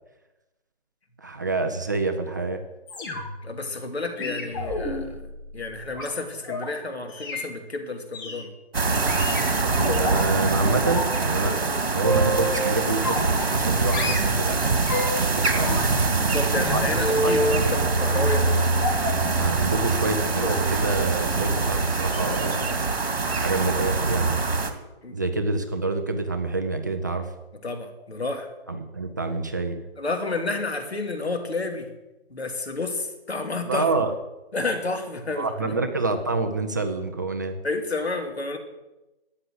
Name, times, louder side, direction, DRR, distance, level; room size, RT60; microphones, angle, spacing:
voice 1, 1.2-2.6 9.6-11.5 11.9-14.6 15.2-15.8 16.5-16.8 17.2-17.3 18.1-18.2 19.4-22.8 23.4-24.4 25.1-27.3 28.7-29.8 33.7-34.1 35.4-37.6, right 3 dB, 20° right, 6 dB, 0.6 m, -27 dB
sound 1, 2.9-3.5 4.2-6.7 7.1-7.5 8.1-8.4 9.1-10.2 10.6-11.1 11.4-12.6 13.0-13.7 13.9-15.2 15.5-17.6 18.8-19.3 19.9-20.1 20.4-20.6 20.9-21.1 21.4-21.5, left 1 dB, 20° left, 1.8 m, -30 dB
voice 2, 3.4-5.2 5.5-8.5 16.1-18.5 25.0-25.1 27.6-28.5 30.0-31.9 32.3-33.9 34.5-35.7 37.6-38.6, left 3 dB, 80° left, 4 dB, 2.9 m, -30 dB
sound 2, 8.7-24.7, right 3 dB, 65° right, 2.3 m, -24 dB
13.0 x 9.4 x 7.8 m, 1.0 s
figure-of-eight pair, 155°, 31 cm